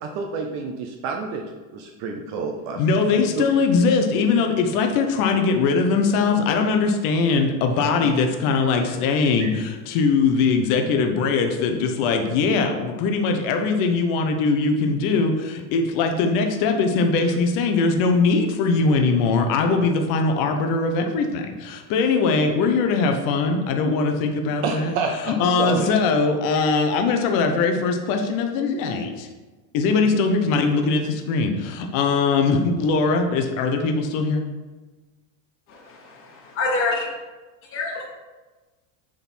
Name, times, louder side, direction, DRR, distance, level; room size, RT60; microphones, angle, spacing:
voice 1, 0.0-1.4 1.7-2.8 3.1-3.4 9.4-9.5 24.6-25.9, right 4 dB, 45° right, 3 dB, 0.6 m, -29 dB
voice 2, 2.8-29.3 29.7-34.5, left 4 dB, 40° left, 4 dB, 0.8 m, -21 dB
voice 3, 35.7-37.0 37.7-38.0, left 3 dB, 25° left, -3 dB, 1.3 m, -27 dB
7.1 x 3.8 x 4.4 m, 1.2 s
supercardioid pair, 155°, 48 cm